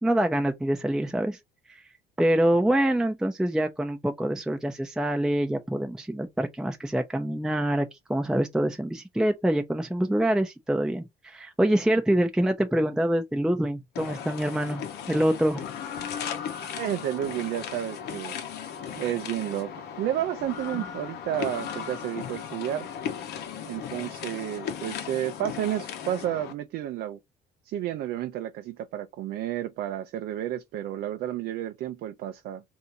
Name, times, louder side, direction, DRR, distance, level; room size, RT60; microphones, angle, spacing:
voice 1, 0.0-1.4 1.7-1.8 2.2-14.8 15.1-15.6, right 1 dB, 5° right, 0.5 m, -25 dB
sound 1, 13.9-26.5, left 8 dB, 75° left, 0.9 m, -36 dB
voice 2, 16.8-18.4 19.0-19.7 20.0-22.9 23.6-27.2 27.6-32.6, right 12 dB, 70° right, 0.5 m, -31 dB
3.4 x 2.7 x 2.6 m
cardioid pair, 110°, 17 cm